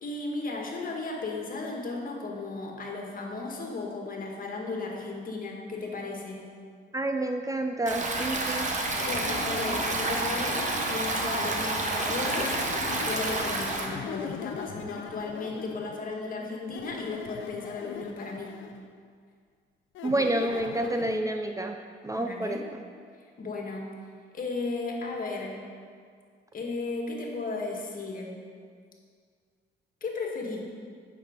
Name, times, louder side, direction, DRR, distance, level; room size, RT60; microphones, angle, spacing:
voice 1, 0.0-6.5 9.0-10.6 10.9-12.5 12.8-18.6 22.1-22.6 23.4-23.9 24.3-25.6 26.5-28.3 30.0-30.6, left 3 dB, 45° left, 0 dB, 1.7 m, -35 dB
voice 2, 6.9-8.7 20.0-21.8 22.0-22.8, right 1 dB, 15° right, 5 dB, 0.5 m, -29 dB
Stream, 7.9-13.9, right 2 dB, 40° right, 1.3 m, -29 dB
sound 1, 8.9-11.1 12.0-16.1 16.7-18.9 19.9-21.2, left 7 dB, 75° left, 0.6 m, -40 dB
8.9 x 6.1 x 5.1 m, 2.1 s
cardioid pair, 90°, 20 cm